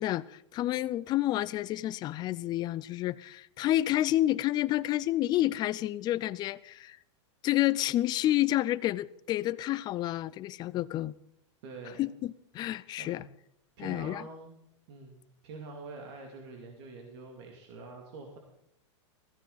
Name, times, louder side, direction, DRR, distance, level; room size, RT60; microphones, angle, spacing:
voice 1, 0.0-7.0 7.4-11.1 12.0-13.3 13.8-14.3, left 14 dB, 25° left, 0.4 m, -29 dB
voice 2, 11.6-12.1 13.0-13.2 13.8-14.5 14.9-15.2 15.4-18.4, right 3 dB, 60° right, 2.6 m, -45 dB
16.0 x 15.0 x 4.0 m
supercardioid pair, 140°, 16 cm